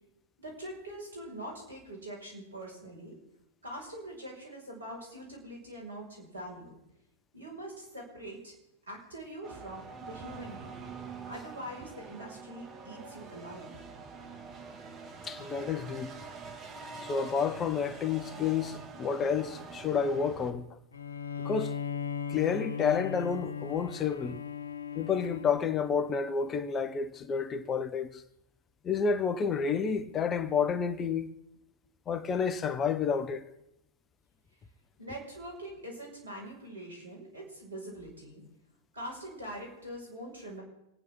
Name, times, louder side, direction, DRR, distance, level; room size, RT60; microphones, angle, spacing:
voice 1, 0.4-3.2 3.6-6.7 7.3-8.5 8.9-10.7 11.3-13.8 35.0-38.4 38.9-40.6, right 1 dB, 80° right, 5.6 m, -43 dB
sound 1, 9.4-20.5, right 4 dB, 30° right, 2.2 m, -45 dB
voice 2, 15.2-16.1 17.0-20.7 21.4-21.8 22.3-24.4 24.9-28.2 28.8-31.3 32.1-33.4, left 6 dB, 25° left, 1.1 m, -30 dB
Bowed string instrument, 20.9-26.4, left 6 dB, 80° left, 0.8 m, -38 dB
27.0 x 9.6 x 3.8 m
figure-of-eight pair, 100°, 0 cm